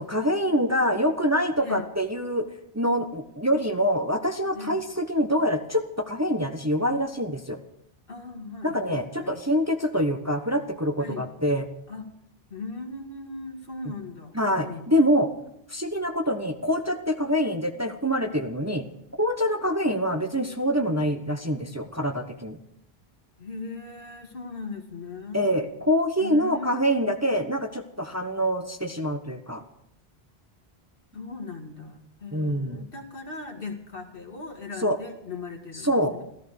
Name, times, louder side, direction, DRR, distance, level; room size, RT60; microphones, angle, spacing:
voice 1, 0.0-2.5 2.7-7.6 8.6-11.6 14.3-15.3 15.7-18.8 19.2-22.6 25.3-29.6 32.3-32.8 34.8-35.0 35.8-36.2, equal, 15° right, 6 dB, 1.0 m, -25 dB
voice 2, 1.6-1.9 4.5-4.8 8.1-9.4 11.0-11.3 11.9-12.1 12.5-14.9 23.4-25.6 26.2-26.8 31.1-36.2, left 3 dB, 60° left, 4 dB, 2.2 m, -39 dB
14.5 x 14.0 x 6.5 m, 0.76 s
omnidirectional pair, 1.1 m